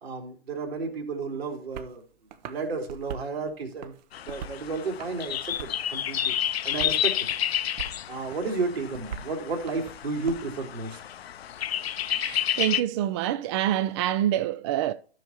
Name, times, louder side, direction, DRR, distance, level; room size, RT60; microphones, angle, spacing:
voice 1, 0.0-2.0 2.4-3.9 4.2-6.3 6.6-7.3 8.1-11.0, right 4 dB, 70° right, 3.3 m, -32 dB
sound 1, 1.7-1.9 2.3-3.3 3.7-4.6 5.0-5.9 6.3-7.0 7.3-8.0 8.3-10.3, right 7 dB, 45° right, 1.0 m, -41 dB
sound 2, 4.1-12.8, left 10 dB, 70° left, 0.6 m, -30 dB
voice 2, 12.1-14.9, right 12 dB, 25° right, 0.4 m, -26 dB
13.0 x 6.4 x 3.0 m
figure-of-eight pair, 120°, 32 cm